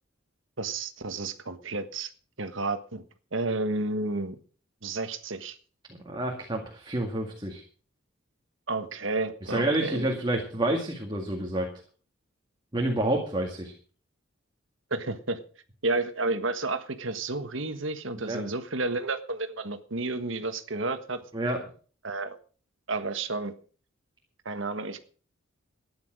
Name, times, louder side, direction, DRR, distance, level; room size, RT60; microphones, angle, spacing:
voice 1, 0.6-2.1 2.4-3.0 3.3-4.4 4.8-5.6 8.7-10.1 14.9-15.4 15.8-21.2 22.0-22.4 22.9-23.5 24.4-25.1, right 3 dB, 65° right, 10 dB, 1.5 m, -31 dB
voice 2, 6.0-7.6 9.5-11.7 12.7-13.7 18.2-18.4 21.3-21.6, right 1 dB, 20° right, 1 dB, 2.1 m, -28 dB
14.0 x 10.5 x 6.3 m, 0.41 s
head